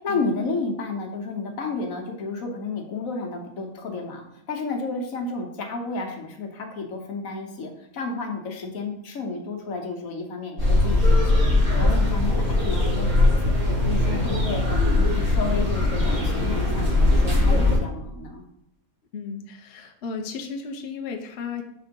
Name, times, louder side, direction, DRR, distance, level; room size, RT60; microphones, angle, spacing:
voice 1, 0.0-14.6 15.0-18.4, left 3 dB, 75° left, 3 dB, 1.4 m, -32 dB
sound 1, 10.6-17.8, left 2 dB, 85° right, 3.6 m, -20 dB
voice 2, 19.1-21.6, left 5 dB, 55° left, 3 dB, 0.9 m, -34 dB
6.3 x 3.8 x 5.2 m, 0.77 s
omnidirectional pair, 1.5 m